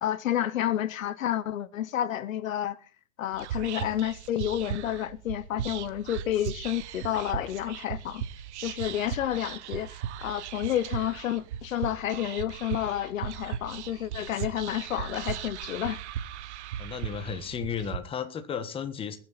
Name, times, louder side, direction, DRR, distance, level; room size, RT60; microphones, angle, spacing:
voice 1, 0.0-2.8 3.2-8.2 8.6-16.0, left 11 dB, 70° left, 1.0 m, -30 dB
Whispering, 3.3-18.0, right 10 dB, 55° right, 1.1 m, -37 dB
voice 2, 16.8-19.2, left 7 dB, 15° left, 1.3 m, -34 dB
21.0 x 7.6 x 4.2 m
hypercardioid pair, 145°, 42 cm